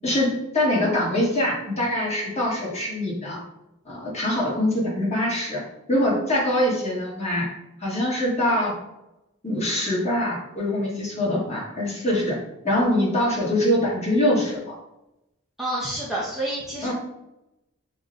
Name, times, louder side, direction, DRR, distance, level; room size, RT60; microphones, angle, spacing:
voice 1, 0.0-3.4 3.9-5.6 5.9-7.5 7.8-8.7 9.4-12.4 12.6-14.7 16.8-16.9, left 1 dB, 30° left, -5 dB, 1.2 m, -23 dB
voice 2, 15.6-16.9, right 1 dB, ahead, -7 dB, 0.6 m, -28 dB
5.3 x 2.2 x 2.5 m, 0.89 s
head